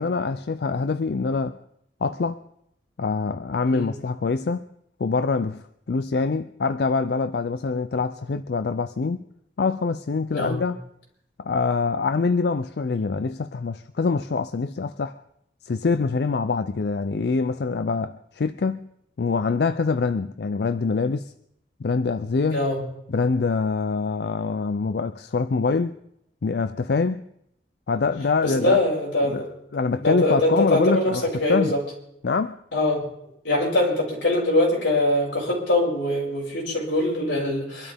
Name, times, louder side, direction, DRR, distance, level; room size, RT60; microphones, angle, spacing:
voice 1, 0.0-1.6 2.0-2.4 3.0-4.7 5.0-5.6 5.9-9.2 9.6-10.8 11.4-15.1 15.6-18.9 19.2-21.3 21.8-22.6 23.1-26.0 26.4-27.2 27.9-28.8 29.2-29.4 29.7-31.7 32.2-32.5, left 4 dB, 60° left, 0.4 m, -24 dB
voice 2, 22.5-22.8 28.4-29.5 30.0-31.8 32.7-33.0 33.4-37.9, left 1 dB, 85° left, 5.4 m, -23 dB
24.5 x 12.5 x 3.5 m
head